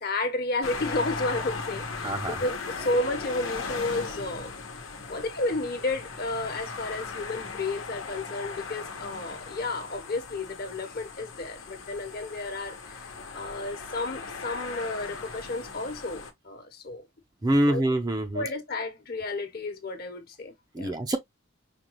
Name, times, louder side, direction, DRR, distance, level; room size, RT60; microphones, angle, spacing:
voice 1, 0.0-4.5 5.1-13.1 13.3-17.1 17.7-17.8 18.3-20.9, left 2 dB, 50° left, 1.0 m, -32 dB
sound 1, 0.6-16.3, left 4 dB, 85° left, 1.0 m, -38 dB
voice 2, 2.0-2.4 17.4-18.5 20.7-21.2, right 1 dB, 20° right, 0.5 m, -25 dB
5.0 x 2.3 x 3.0 m
head